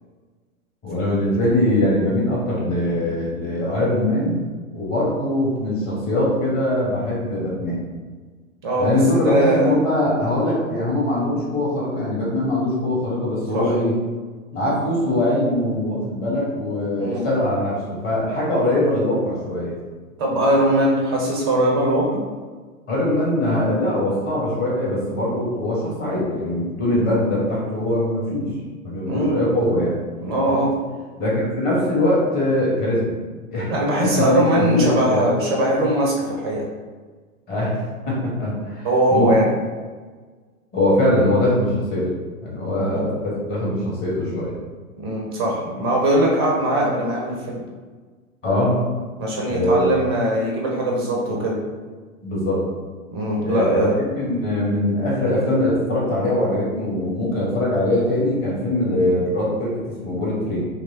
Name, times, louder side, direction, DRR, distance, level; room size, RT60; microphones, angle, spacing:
voice 1, 0.8-4.4 4.7-7.8 8.8-13.9 14.5-19.8 22.9-28.5 28.8-30.0 31.2-33.1 33.5-35.2 37.5-39.3 40.7-42.1 42.4-44.5 48.4-48.8 49.5-49.9 52.2-52.6 53.4-60.7, left 1 dB, 20° left, -6 dB, 1.1 m, -22 dB
voice 2, 8.6-9.8 13.5-13.7 16.9-17.3 20.2-22.2 29.1-29.6 30.2-30.8 33.7-36.6 38.8-39.5 42.7-43.0 45.0-47.6 49.2-51.6 53.1-54.0, right 1 dB, 20° right, -2 dB, 0.4 m, -20 dB
3.3 x 3.0 x 2.7 m, 1.4 s
figure-of-eight pair, 105°, 42 cm